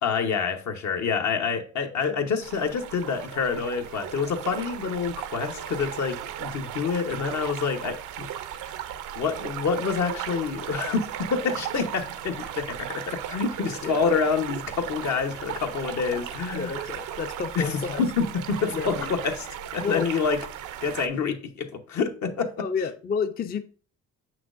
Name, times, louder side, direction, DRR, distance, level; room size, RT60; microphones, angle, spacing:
voice 1, 0.0-8.3 9.2-16.8 17.5-19.5 19.7-20.4 20.8-22.7, left 5 dB, 70° left, 1.0 m, -27 dB
sound 1, 2.4-21.1, right 10 dB, 90° right, 0.6 m, -36 dB
voice 2, 13.8-14.2 16.1-16.2 16.5-18.0 18.6-19.1 19.8-20.1 22.6-23.6, left 5 dB, 30° left, 0.4 m, -31 dB
7.2 x 6.0 x 2.5 m
cardioid pair, 90°, 30 cm